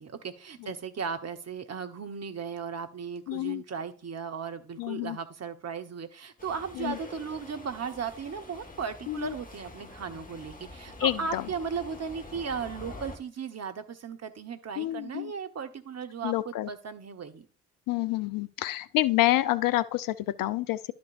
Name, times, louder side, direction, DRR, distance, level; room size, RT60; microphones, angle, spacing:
voice 1, 0.0-17.5, right 6 dB, 35° right, 1.2 m, -36 dB
voice 2, 3.3-3.6 4.8-5.2 6.8-6.9 9.1-9.3 11.0-11.4 14.8-15.3 16.2-16.7 17.9-20.9, left 16 dB, 55° left, 0.5 m, -28 dB
Subway metro underground, 6.4-13.2, left 2 dB, 20° left, 1.7 m, -46 dB
12.0 x 5.3 x 2.6 m
hypercardioid pair, 50°, 42 cm